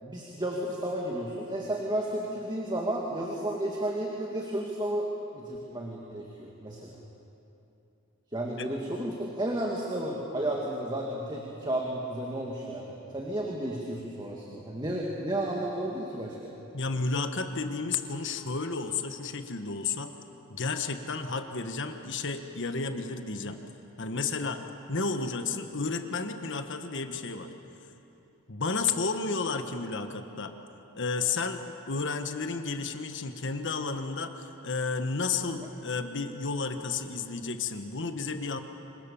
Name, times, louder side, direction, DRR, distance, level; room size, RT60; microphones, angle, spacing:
voice 1, 0.0-7.0 8.3-16.4, right 1 dB, 20° right, -1 dB, 2.2 m, -32 dB
voice 2, 16.7-20.1 20.5-23.6 24.0-24.6 24.9-27.5 28.5-30.5 30.9-38.6, left 4 dB, 55° left, 7 dB, 1.4 m, -32 dB
26.5 x 25.0 x 7.1 m, 2.9 s
head